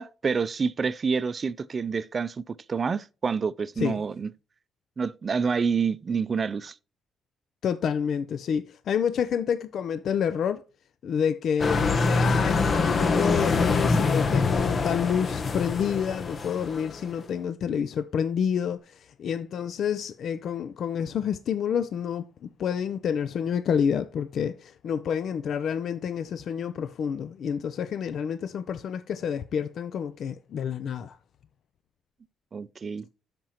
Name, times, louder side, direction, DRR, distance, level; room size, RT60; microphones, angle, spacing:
voice 1, 0.0-4.3 5.0-6.7 32.5-33.1, right 5 dB, 40° right, 0.4 m, -28 dB
voice 2, 7.6-10.6 11.0-31.2, left 7 dB, 65° left, 0.4 m, -28 dB
sound 1, 11.6-17.2, left 4 dB, 45° left, 0.9 m, -25 dB
13.0 x 5.2 x 2.9 m
cardioid pair, 90°, 0 cm